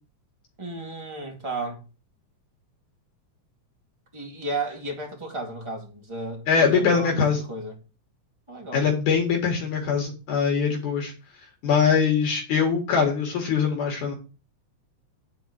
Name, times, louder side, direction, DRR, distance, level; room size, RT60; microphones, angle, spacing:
voice 1, 0.6-1.8 4.1-7.8 8.5-8.9, right 2 dB, 10° right, 1.6 m, -33 dB
voice 2, 6.5-7.4 8.7-11.1 11.6-14.1, left 6 dB, 75° left, 3.2 m, -22 dB
9.8 x 4.3 x 6.3 m
omnidirectional pair, 3.6 m